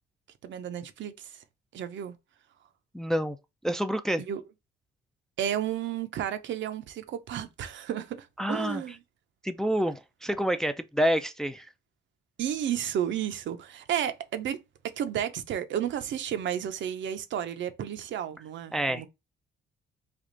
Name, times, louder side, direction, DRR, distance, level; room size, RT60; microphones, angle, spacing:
voice 1, 0.4-1.4 1.7-2.2 4.2-4.4 5.4-9.0 12.4-19.1, right 10 dB, 70° right, 0.7 m, -32 dB
voice 2, 2.9-3.4 3.6-4.2 8.4-8.8 9.4-11.7 18.7-19.1, equal, ahead, 0.4 m, -28 dB
3.4 x 2.4 x 3.7 m
cardioid pair, 90°, 20 cm